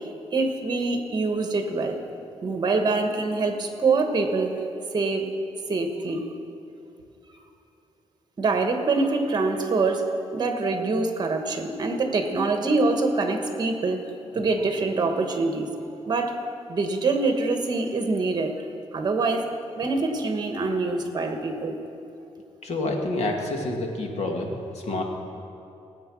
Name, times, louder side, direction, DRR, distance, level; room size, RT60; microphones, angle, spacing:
voice 1, 0.3-2.0 2.4-4.6 4.9-5.3 5.7-6.3 8.4-10.0 10.3-14.0 14.3-15.7 16.1-16.4 16.7-18.5 18.9-19.5 19.8-21.8, right 3 dB, 35° right, 5 dB, 1.4 m, -25 dB
voice 2, 22.6-25.0, left 2 dB, 65° left, 1 dB, 1.9 m, -28 dB
17.5 x 8.6 x 6.2 m, 2.7 s
wide cardioid pair, 160°, 12 cm